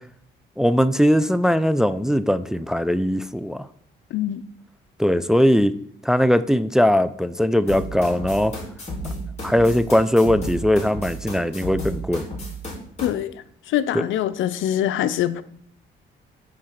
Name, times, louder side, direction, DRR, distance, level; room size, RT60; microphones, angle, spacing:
voice 1, 0.6-3.7 5.0-5.7 6.0-8.5 9.4-12.3 13.9-14.0, equal, 5° right, 13 dB, 0.4 m, -20 dB
voice 2, 4.1-4.4 13.0-13.3 13.7-15.4, left 11 dB, 80° left, 15 dB, 0.6 m, -23 dB
sound 1, 7.7-13.1, equal, 35° left, 4.0 m, -32 dB
9.5 x 3.9 x 6.5 m, 0.64 s
cardioid pair, 90°, 20 cm